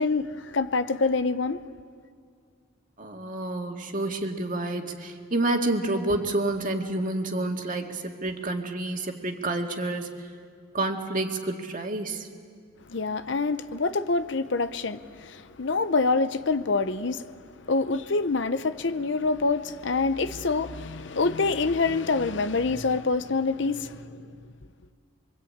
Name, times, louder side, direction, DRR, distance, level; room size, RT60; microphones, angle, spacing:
voice 1, 0.0-1.6 12.9-17.2 17.7-24.1, left 3 dB, 60° left, 0.8 m, -26 dB
voice 2, 3.0-10.2 10.7-12.3, right 2 dB, 40° right, 2.1 m, -29 dB
26.5 x 23.5 x 8.8 m
head